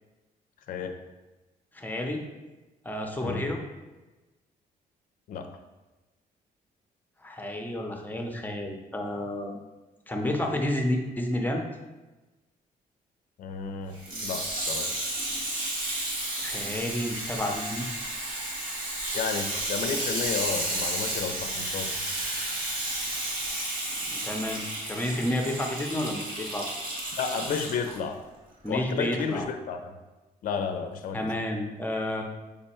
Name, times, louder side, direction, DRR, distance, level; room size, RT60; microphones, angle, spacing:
voice 1, 1.7-2.2 2.8-3.6 7.2-9.6 10.1-11.6 16.4-17.9 19.5-19.6 24.0-26.9 28.6-29.5 31.1-32.2, left 1 dB, 10° left, 2 dB, 0.6 m, -30 dB
voice 2, 13.4-14.0 14.2-14.9 19.1-22.0 27.2-28.2 28.7-29.9 30.4-31.3, left 6 dB, 60° left, 7 dB, 0.4 m, -32 dB
Water tap faucet / Sink (filling or washing), 14.0-28.0 28.6-28.7, right 1 dB, 65° right, 1.4 m, -32 dB
5.0 x 2.2 x 4.2 m, 1.1 s
cardioid pair, 100°, 16 cm